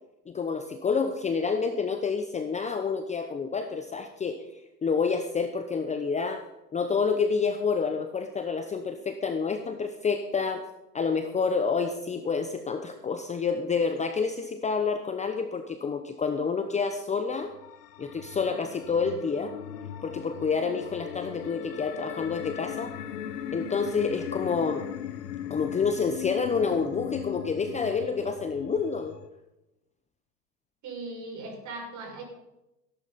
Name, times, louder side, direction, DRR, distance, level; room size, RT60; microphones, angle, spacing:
voice 1, 0.3-4.5 4.8-6.4 6.7-10.7 10.9-17.5 18.0-19.5 20.0-23.0 23.5-24.8 25.5-29.1, left 5 dB, 15° left, 8 dB, 0.8 m, -28 dB
sound 1, 17.3-29.3, left 10 dB, 75° left, 1.3 m, -39 dB
voice 2, 30.8-32.2, right 3 dB, 35° right, 0 dB, 6.1 m, -38 dB
17.5 x 11.0 x 4.2 m, 0.92 s
hypercardioid pair, 105°, 48 cm